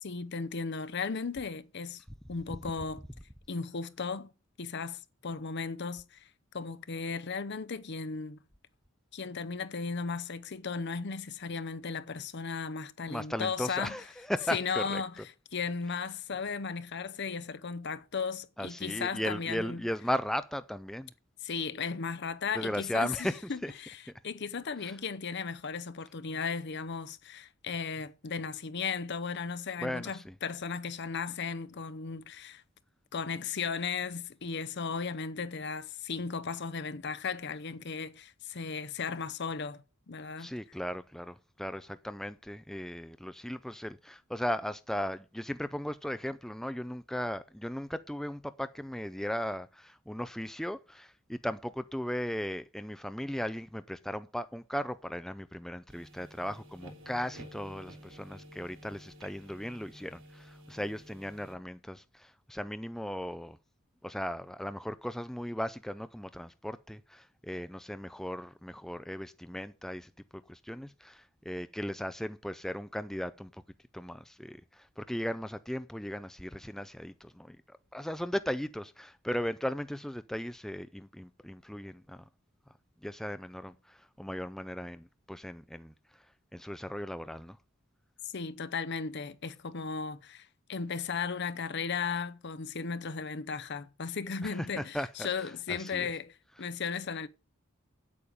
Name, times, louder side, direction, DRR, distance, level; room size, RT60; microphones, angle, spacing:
voice 1, 0.0-3.0 3.5-4.3 4.6-6.3 6.5-8.4 9.1-14.0 14.5-15.1 15.5-19.8 21.4-32.6 33.1-40.5 88.2-97.3, left 5 dB, 55° left, 0.7 m, -36 dB
voice 2, 13.0-15.0 18.6-21.1 22.5-23.7 24.8-25.0 29.8-30.3 40.4-63.6 64.0-70.1 70.5-73.6 73.9-82.3 83.0-86.3 86.5-87.6 94.4-95.3 95.7-96.1, equal, ahead, 0.4 m, -37 dB
sound 1, 55.9-61.6, right 1 dB, 65° right, 3.1 m, -52 dB
8.7 x 8.6 x 5.0 m
head